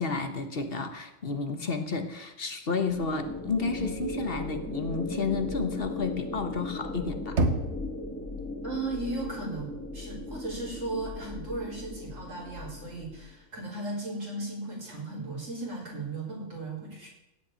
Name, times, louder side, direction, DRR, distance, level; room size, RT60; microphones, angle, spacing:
voice 1, 0.0-7.4, left 4 dB, 50° left, 8 dB, 1.3 m, -31 dB
sound 1, 2.9-13.3, left 2 dB, 10° left, 1.8 m, -37 dB
Knock, 7.4-8.3, right 2 dB, 60° right, 1.5 m, -28 dB
voice 2, 8.6-17.1, right 2 dB, 80° right, -3 dB, 5.0 m, -36 dB
16.5 x 5.6 x 8.8 m, 0.90 s
omnidirectional pair, 1.3 m